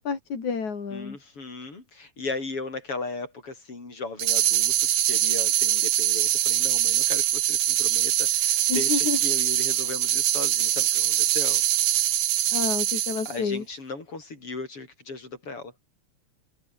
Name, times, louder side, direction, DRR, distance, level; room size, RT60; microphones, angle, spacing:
voice 1, 0.0-1.2 8.7-9.2 12.5-13.6, left 5 dB, 75° left, 5.5 m, -29 dB
voice 2, 0.9-11.6 12.9-13.0 13.3-15.7, left 3 dB, 45° left, 7.1 m, -37 dB
sound 1, 4.2-13.4, right 12 dB, 65° right, 1.4 m, -23 dB
omnidirectional pair, 3.3 m